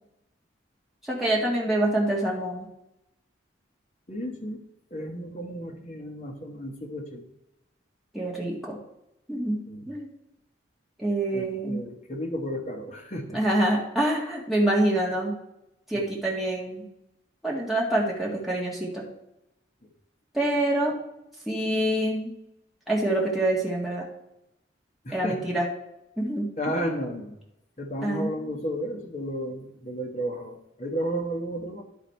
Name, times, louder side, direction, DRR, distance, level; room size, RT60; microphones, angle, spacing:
voice 1, 1.0-2.7 8.1-8.8 9.3-9.6 9.9-10.1 11.0-11.8 13.3-15.3 15.9-16.8 17.4-19.1 20.3-20.9 21.5-22.3 22.9-24.1 25.1-25.7 26.2-26.8 28.0-28.5, right 1 dB, ahead, -5 dB, 1.8 m, -26 dB
voice 2, 4.1-4.6 4.9-7.3 9.6-9.9 11.3-13.4 15.9-16.1 19.8-19.9 25.0-25.5 26.6-27.4 27.8-31.8, equal, 35° left, 2 dB, 1.2 m, -33 dB
11.0 x 4.1 x 4.4 m, 0.86 s
head